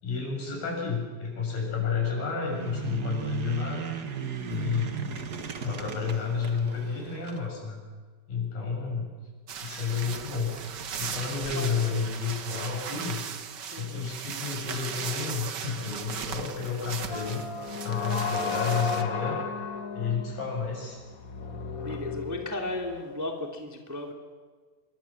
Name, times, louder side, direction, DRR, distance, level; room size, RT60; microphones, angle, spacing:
voice 1, 0.0-3.8 4.5-5.1 5.6-7.8 8.3-9.1 9.6-10.5 11.0-13.2 13.8-17.5 17.8-19.4 20.0-21.0, left 5 dB, 75° left, 0 dB, 8.8 m, -31 dB
sound 1, 2.4-7.4, right 7 dB, 45° right, 1.3 m, -36 dB
sound 2, 9.5-19.0, right 7 dB, 75° right, 0.9 m, -37 dB
voice 2, 13.7-14.1 21.8-24.1, left 1 dB, 5° right, 2 dB, 2.4 m, -35 dB
sound 3, 17.1-23.1, left 5 dB, 55° left, 0.9 m, -34 dB
27.5 x 24.5 x 7.4 m, 1.5 s
omnidirectional pair, 4.0 m